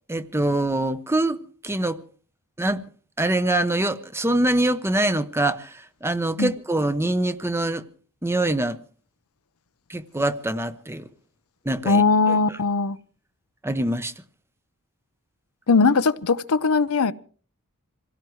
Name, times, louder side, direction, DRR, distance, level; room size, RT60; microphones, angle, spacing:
voice 1, 0.1-2.0 2.6-2.9 3.2-7.8 8.2-8.8 9.9-11.1 11.6-12.0 12.3-12.6 13.6-14.1, right 1 dB, 10° right, 0.8 m, -24 dB
voice 2, 11.8-13.0 15.7-17.1, left 4 dB, 80° left, 0.7 m, -20 dB
26.0 x 17.0 x 3.2 m
head